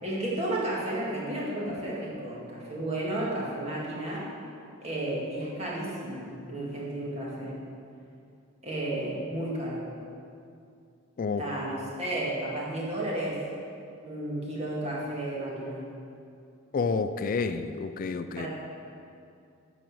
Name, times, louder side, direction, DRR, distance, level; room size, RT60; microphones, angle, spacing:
voice 1, 0.0-4.3 4.8-7.6 8.6-9.9 11.4-13.4 14.0-15.9 18.4-18.5, right 1 dB, 30° right, -5 dB, 2.1 m, -32 dB
voice 2, 16.7-18.5, left 4 dB, 45° left, 10 dB, 0.3 m, -29 dB
9.0 x 6.0 x 6.2 m, 2.5 s
head